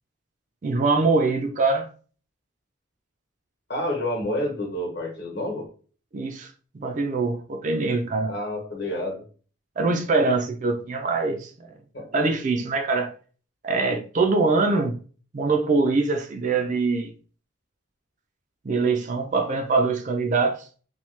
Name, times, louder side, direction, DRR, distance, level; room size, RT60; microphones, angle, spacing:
voice 1, 0.6-1.9 6.1-8.3 9.8-11.7 12.1-13.1 13.6-14.9 15.3-17.1 18.6-20.6, right 3 dB, 40° right, 0.4 m, -23 dB
voice 2, 3.7-5.7 8.2-9.2 11.9-12.1, left 1 dB, 55° left, 1.0 m, -29 dB
3.0 x 2.3 x 3.1 m
head